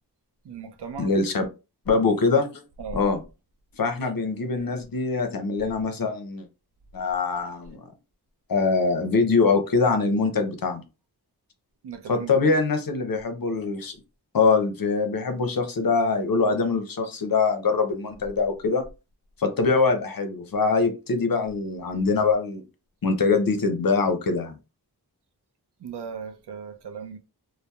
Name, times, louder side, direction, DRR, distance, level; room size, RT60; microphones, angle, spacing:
voice 1, 0.4-1.1 2.8-3.0 11.8-12.5 25.8-27.2, right 5 dB, 85° right, 0.5 m, -37 dB
voice 2, 1.0-1.5 1.9-2.6 2.9-3.2 3.8-6.5 6.9-7.8 8.5-10.8 12.1-14.0 14.3-18.8 19.4-22.6 23.0-24.5, left 4 dB, 60° left, 0.6 m, -23 dB
2.7 x 2.0 x 2.2 m
wide cardioid pair, 55°, 39 cm